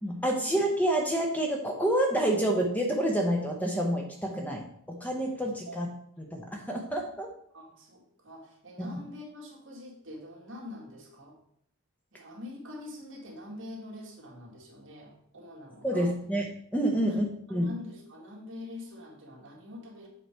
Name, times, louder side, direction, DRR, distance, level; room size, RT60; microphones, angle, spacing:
voice 1, 0.0-5.9 6.2-7.3 8.8-8.9 15.8-16.5 16.7-17.2 17.5-17.7, right 1 dB, 5° left, 1 dB, 0.7 m, -28 dB
voice 2, 7.5-11.4 12.1-16.1 17.0-17.2 17.5-20.1, left 2 dB, 55° right, -2 dB, 2.1 m, -45 dB
8.1 x 4.9 x 4.4 m, 0.69 s
head